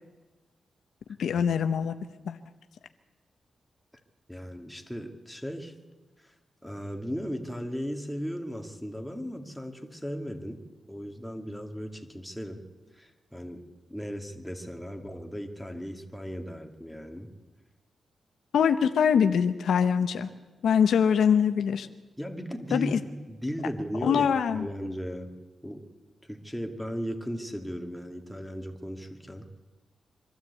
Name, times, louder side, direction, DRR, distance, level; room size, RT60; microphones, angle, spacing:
voice 1, 1.2-1.9 2.3-2.4 18.5-20.3 20.6-21.9 22.7-23.0 24.0-24.7, left 7 dB, 85° left, 9 dB, 0.9 m, -23 dB
voice 2, 4.3-5.7 6.2-6.3 6.6-10.6 10.9-12.6 12.9-13.6 13.9-17.3 22.2-25.3 25.6-25.8 26.3-29.5, equal, ahead, 3 dB, 2.4 m, -36 dB
24.5 x 13.0 x 8.3 m, 1.2 s
cardioid pair, 90°, 0 cm